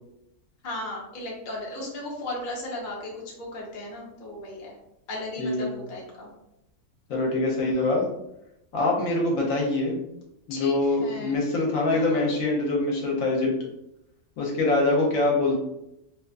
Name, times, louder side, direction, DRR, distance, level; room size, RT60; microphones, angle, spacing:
voice 1, 0.6-4.7 5.1-6.3 7.6-8.0 10.5-11.4 11.9-12.2, left 2 dB, 55° left, -3 dB, 0.5 m, -36 dB
voice 2, 5.4-5.7 7.1-8.0 8.7-10.0 10.5-13.5 14.4-15.5, left 2 dB, 70° left, -2 dB, 1.0 m, -24 dB
2.6 x 2.3 x 2.3 m, 0.85 s
omnidirectional pair, 1.6 m